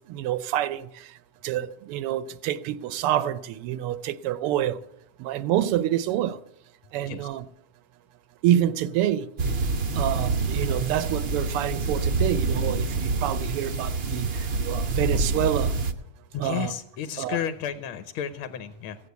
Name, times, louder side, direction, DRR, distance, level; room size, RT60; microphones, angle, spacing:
voice 1, 0.1-0.9 1.4-4.7 5.2-6.4 6.9-7.4 8.4-9.3 10.0-14.2 14.7-15.7 16.4-16.7 17.2-17.4, right 11 dB, 85° right, 1.6 m, -27 dB
sound 1, 9.4-15.9, right 3 dB, 60° right, 0.6 m, -27 dB
voice 2, 16.3-19.0, left 9 dB, 75° left, 1.6 m, -32 dB
15.5 x 8.2 x 8.2 m
omnidirectional pair, 2.4 m